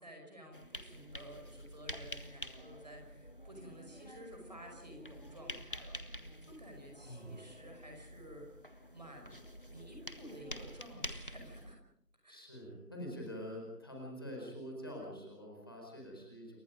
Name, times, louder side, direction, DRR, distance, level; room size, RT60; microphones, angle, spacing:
voice 1, 0.0-8.5 8.9-11.8 12.2-12.4, equal, 25° right, 2 dB, 5.4 m, -53 dB
sound 1, 0.5-11.8, equal, 35° left, 1.6 m, -48 dB
voice 2, 7.0-7.4 12.3-16.6, equal, 15° left, -2 dB, 4.6 m, -45 dB
29.5 x 24.0 x 5.2 m, 0.73 s
figure-of-eight pair, 175°, 47 cm